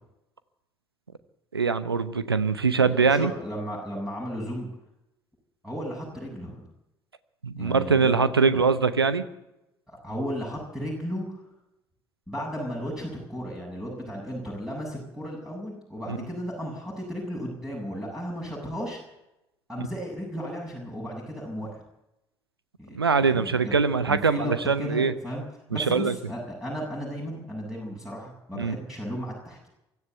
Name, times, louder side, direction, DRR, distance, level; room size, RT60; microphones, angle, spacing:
voice 1, 1.5-3.3 7.4-9.2 16.1-16.2 22.9-25.1 25.7-26.1 28.5-28.8, right 5 dB, 85° right, 14 dB, 0.9 m, -23 dB
voice 2, 2.8-4.7 5.6-6.6 7.6-8.2 8.5-8.6 9.9-11.4 12.3-19.0 19.7-21.8 22.8-23.7 24.1-25.4 25.7-29.7, equal, 5° right, -3 dB, 7.7 m, -34 dB
24.5 x 13.0 x 8.1 m, 0.89 s
figure-of-eight pair, 55°, 13 cm